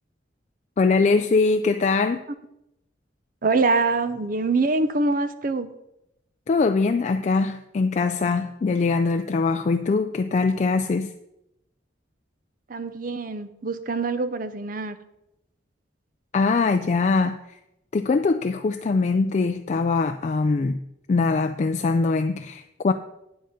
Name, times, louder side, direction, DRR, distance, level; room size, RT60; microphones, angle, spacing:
voice 1, 0.8-2.2 6.5-11.1 16.3-17.6 17.9-20.8 21.1-22.9, left 4 dB, 40° left, 0.3 m, -22 dB
voice 2, 3.4-5.7 12.7-15.0, right 3 dB, 45° right, 0.6 m, -24 dB
8.8 x 7.8 x 5.1 m
head